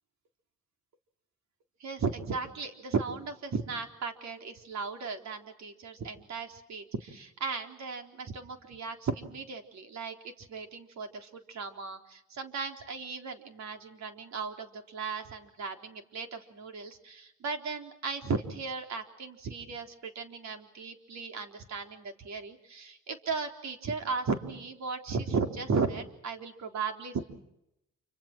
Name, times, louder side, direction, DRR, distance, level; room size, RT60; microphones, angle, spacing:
voice 1, 1.8-27.2, right 4 dB, 65° right, 5 dB, 3.9 m, -36 dB
28.5 x 26.0 x 6.1 m, 0.83 s
cardioid pair, 90°, 30 cm